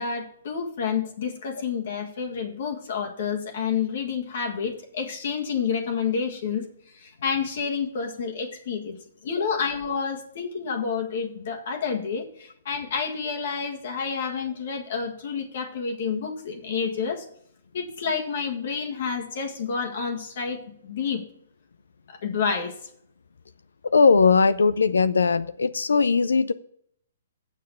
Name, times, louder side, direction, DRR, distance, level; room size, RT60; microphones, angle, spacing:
voice 1, 0.0-6.6 7.0-9.0 9.2-17.3 17.7-21.2 22.1-22.7, left 6 dB, 55° left, 3 dB, 1.7 m, -29 dB
voice 2, 23.9-26.5, left 4 dB, 80° left, 14 dB, 0.5 m, -19 dB
7.5 x 6.7 x 6.8 m, 0.65 s
hypercardioid pair, 130°, 0 cm